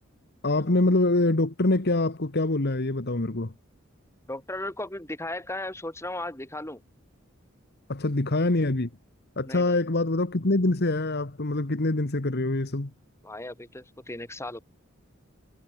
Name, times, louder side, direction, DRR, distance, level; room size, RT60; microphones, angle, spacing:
voice 1, 0.4-3.5 7.9-8.9 9.4-12.9, left 2 dB, 55° left, 1.5 m, -25 dB
voice 2, 4.3-6.8 9.4-9.8 13.2-14.6, left 1 dB, 15° left, 6.5 m, -36 dB
head